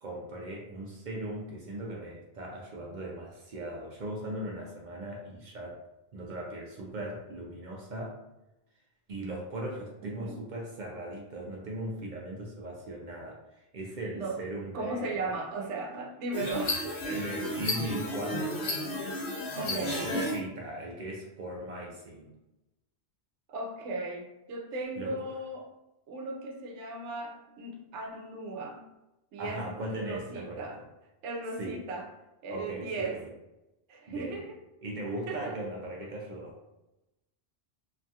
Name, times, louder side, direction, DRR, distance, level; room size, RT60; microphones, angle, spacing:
voice 1, 0.0-5.8 6.1-8.2 9.1-15.3 17.0-18.7 19.6-22.3 25.0-25.1 29.4-30.8 31.6-31.8 32.5-33.3 34.1-34.4 34.8-36.6, right 1 dB, 55° right, -1 dB, 0.6 m, -39 dB
voice 2, 10.0-10.4 14.2-14.4 14.7-17.1 19.6-20.1 23.5-25.7 26.1-28.9 29.3-29.6 30.0-30.8 31.2-32.1 32.4-33.2 33.9-34.6 35.3-35.5, right 2 dB, 85° right, 0 dB, 0.9 m, -36 dB
sound 1, 16.3-20.4, left 1 dB, 75° left, 1.0 m, -33 dB
3.0 x 2.3 x 2.7 m, 0.95 s
omnidirectional pair, 1.2 m